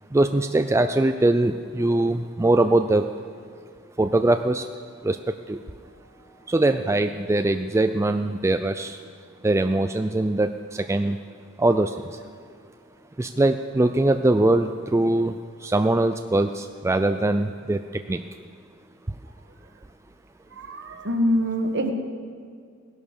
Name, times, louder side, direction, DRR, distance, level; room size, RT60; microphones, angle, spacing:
voice 1, 0.1-3.1 4.0-4.7 5.0-5.2 5.5-5.6 6.5-9.0 9.4-11.2 11.6-11.9 13.2-15.3 15.6-17.8 18.1-18.2, right 2 dB, 15° right, 8 dB, 0.4 m, -22 dB
voice 2, 20.5-21.9, equal, 55° right, 5 dB, 1.6 m, -24 dB
17.5 x 11.0 x 6.8 m, 2.2 s
head